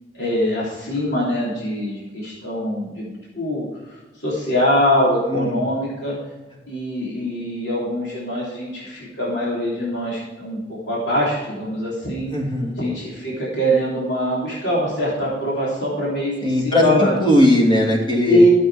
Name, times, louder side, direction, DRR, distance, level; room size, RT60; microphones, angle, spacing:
voice 1, 0.1-6.2 6.7-12.3 12.8-17.2 18.3-18.5, equal, 75° left, -6 dB, 3.4 m, -23 dB
voice 2, 5.3-5.7 12.3-12.8 16.4-18.4, equal, 30° left, 0 dB, 2.7 m, -18 dB
13.5 x 7.9 x 4.9 m, 1.2 s
head